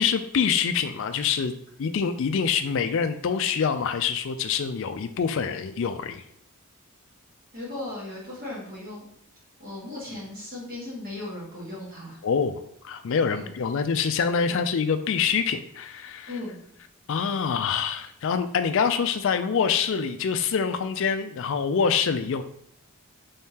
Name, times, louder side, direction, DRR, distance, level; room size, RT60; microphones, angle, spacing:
voice 1, 0.0-1.5 1.8-6.2 12.2-12.6 12.8-16.3 17.1-22.4, left 6 dB, 55° left, 9 dB, 0.3 m, -25 dB
voice 2, 7.5-9.0 9.6-12.2 13.3-13.5 14.5-14.6 16.3-16.6, left 2 dB, 40° right, -6 dB, 1.5 m, -37 dB
3.6 x 3.5 x 2.8 m, 0.70 s
head